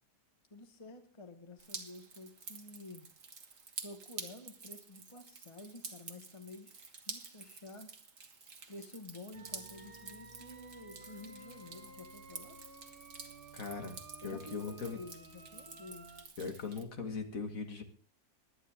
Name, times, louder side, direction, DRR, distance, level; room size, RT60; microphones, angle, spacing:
voice 1, 0.5-3.1 3.8-8.0 8.7-12.6 14.2-16.2, left 2 dB, 20° left, 7 dB, 1.5 m, -51 dB
Drip, 1.6-16.8, right 5 dB, 50° right, 1.9 m, -49 dB
sound 1, 9.3-16.2, right 3 dB, 35° right, 1.6 m, -54 dB
voice 2, 13.5-14.0 14.2-15.0 16.4-17.8, left 4 dB, 55° left, 5 dB, 2.1 m, -39 dB
20.5 x 10.0 x 3.6 m, 0.37 s
omnidirectional pair, 1.8 m